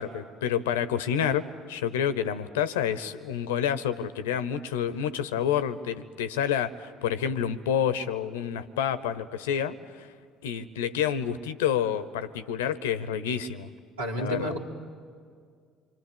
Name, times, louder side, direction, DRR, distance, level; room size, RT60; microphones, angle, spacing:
voice 1, 0.0-10.1 10.4-13.7 14.2-14.5, left 9 dB, 75° left, 14 dB, 0.8 m, -29 dB
voice 2, 14.0-14.6, equal, 80° right, -1 dB, 2.6 m, -30 dB
26.0 x 25.5 x 8.7 m, 2.1 s
figure-of-eight pair, 55°, 0 cm